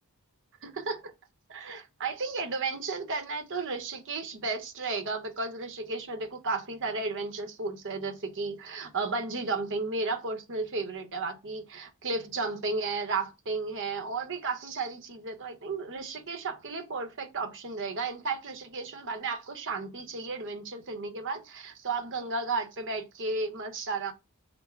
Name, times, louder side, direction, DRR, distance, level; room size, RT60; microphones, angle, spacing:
voice 1, 0.6-1.1 1.5-24.1, right 3 dB, 60° right, 0.9 m, -33 dB
5.2 x 2.1 x 4.6 m
head